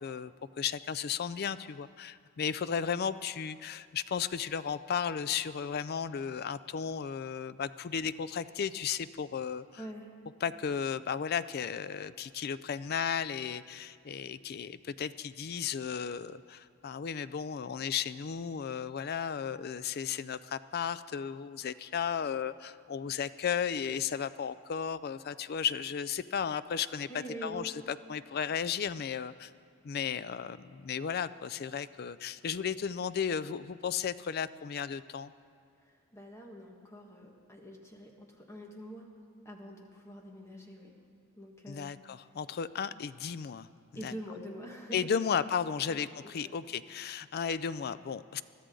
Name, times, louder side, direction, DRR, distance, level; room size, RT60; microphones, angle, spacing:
voice 1, 0.0-0.3 0.6-9.7 10.4-27.1 27.4-29.5 29.8-35.3 41.7-43.7 44.0-44.1 44.9-48.4, left 7 dB, 50° left, 16 dB, 0.4 m, -34 dB
voice 2, 9.8-10.1 27.1-27.7 35.8-39.1 39.4-40.9 41.3-41.9 43.9-45.4 45.9-46.5, equal, 15° left, 0 dB, 1.6 m, -45 dB
21.5 x 13.0 x 3.8 m, 2.3 s
head